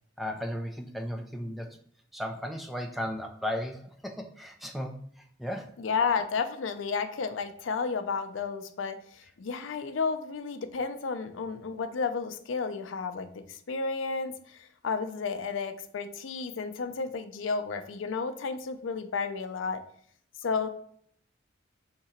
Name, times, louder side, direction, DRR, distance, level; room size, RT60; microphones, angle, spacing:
voice 1, 0.2-1.8 2.1-5.7, equal, ahead, 3 dB, 0.4 m, -35 dB
voice 2, 5.8-19.8 20.4-20.7, left 5 dB, 80° left, 9 dB, 0.5 m, -32 dB
3.6 x 2.8 x 4.3 m, 0.62 s
head